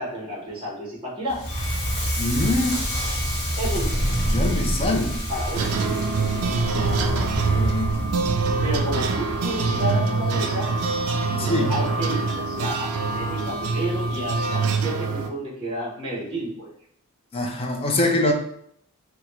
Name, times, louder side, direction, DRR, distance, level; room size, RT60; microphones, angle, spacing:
voice 1, 0.0-1.4 3.6-3.9 5.3-6.5 8.6-10.7 11.3-16.7, right 1 dB, 20° right, -6 dB, 1.0 m, -31 dB
Crackle, 1.3-10.3, equal, 45° left, 1.2 m, -27 dB
sound 1, 1.5-14.6, left 1 dB, 80° left, 0.6 m, -36 dB
voice 2, 2.2-2.8 4.3-5.2 6.7-8.0 11.4-11.7 17.3-18.3, left 2 dB, 25° left, 2 dB, 0.4 m, -24 dB
sound 2, 5.5-15.3, right 4 dB, 75° right, 0.3 m, -25 dB
2.8 x 2.2 x 3.0 m, 0.68 s
head